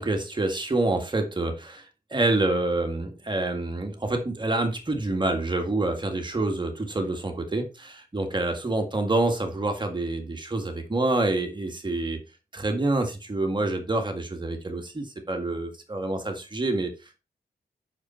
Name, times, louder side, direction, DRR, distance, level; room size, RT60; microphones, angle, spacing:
voice 1, 0.0-1.9 2.1-12.2 12.5-16.9, right 2 dB, 30° right, 1.8 m, -27 dB
8.5 x 6.6 x 4.4 m
wide cardioid pair, 110°, 16 cm